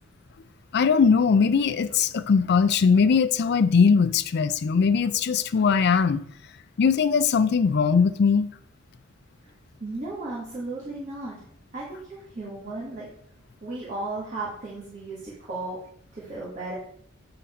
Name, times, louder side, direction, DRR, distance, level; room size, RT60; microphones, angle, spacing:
voice 1, 0.7-6.2 6.8-8.5, left 5 dB, 55° left, 0.4 m, -20 dB
voice 2, 9.8-11.5 11.7-13.1 13.6-15.8 16.1-16.7, right 2 dB, 35° right, 1.5 m, -35 dB
8.2 x 3.9 x 4.3 m
head